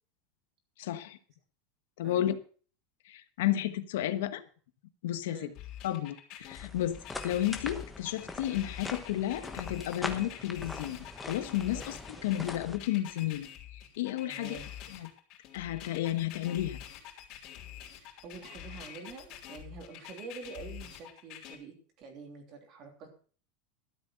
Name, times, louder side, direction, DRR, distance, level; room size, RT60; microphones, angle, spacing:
voice 1, 0.8-1.2 2.0-2.4 3.0-4.4 5.0-5.5 5.8-7.0 7.2-12.0 12.2-13.5 14.0-14.6 14.9-15.1 15.5-16.8, left 13 dB, 85° left, 11 dB, 1.3 m, -32 dB
voice 2, 2.0-2.4 5.3-5.5 11.7-11.8 12.1-12.3 14.2-14.7 17.8-23.1, right 4 dB, 35° right, 4 dB, 3.1 m, -47 dB
sound 1, 5.5-21.5, left 11 dB, 40° left, 3.7 m, -46 dB
sound 2, 6.5-12.8, left 3 dB, 5° left, 1.1 m, -42 dB
13.0 x 7.8 x 6.3 m, 0.42 s
supercardioid pair, 170°, 0 cm